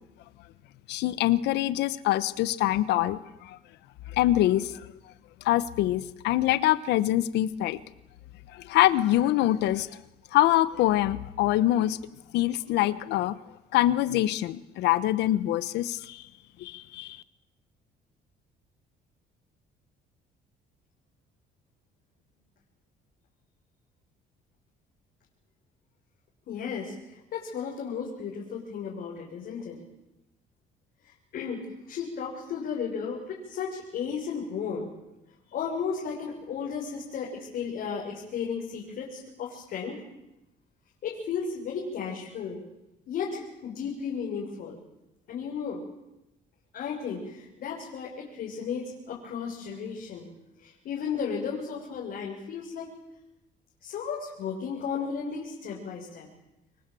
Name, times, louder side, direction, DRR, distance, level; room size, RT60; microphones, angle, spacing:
voice 1, 0.9-3.6 4.1-4.7 5.4-7.8 8.5-9.9 10.3-12.0 12.3-13.4 13.7-16.2 16.6-17.2, left 14 dB, 85° left, 15 dB, 1.2 m, -24 dB
voice 2, 26.5-29.8 31.3-34.9 35.5-40.0 41.0-42.6 43.1-44.8 45.3-45.8 46.7-50.3 50.6-52.9 53.8-56.3, left 6 dB, 65° left, -3 dB, 6.3 m, -34 dB
28.0 x 23.5 x 7.8 m, 0.93 s
cardioid pair, 110°, 17 cm